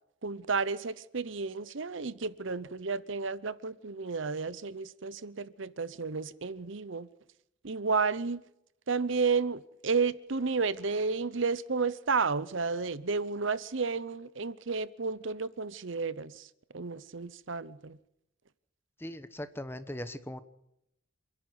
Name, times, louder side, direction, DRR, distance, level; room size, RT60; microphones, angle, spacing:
voice 1, 0.2-7.1 7.6-8.4 8.9-16.5 16.7-18.0, right 4 dB, 65° right, 0.8 m, -32 dB
voice 2, 19.0-20.4, left 1 dB, 10° left, 1.1 m, -39 dB
27.5 x 11.0 x 9.6 m
head